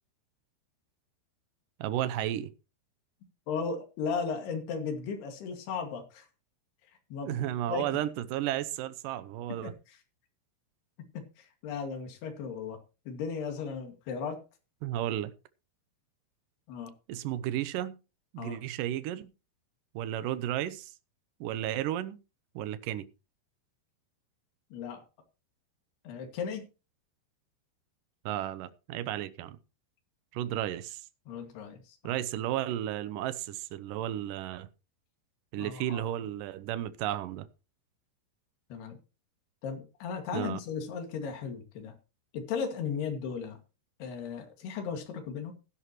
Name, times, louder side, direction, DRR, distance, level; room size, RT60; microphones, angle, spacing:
voice 1, 1.8-2.5 7.3-9.7 14.8-15.3 17.1-18.0 18.3-19.3 19.9-20.9 21.4-22.2 22.6-23.1 28.3-29.6 30.3-31.1 32.0-34.7 35.5-37.5 40.3-40.6, right 12 dB, 80° right, 2.0 m, -33 dB
voice 2, 3.5-6.3 7.1-8.0 9.5-10.0 11.1-12.8 13.1-14.4 16.7-16.9 18.4-18.6 24.7-25.0 26.0-26.6 31.3-32.0 35.6-36.0 38.7-39.0 39.6-41.9 42.3-43.6 44.0-45.5, left 6 dB, 70° left, 4.2 m, -36 dB
16.0 x 11.0 x 3.1 m
omnidirectional pair, 4.8 m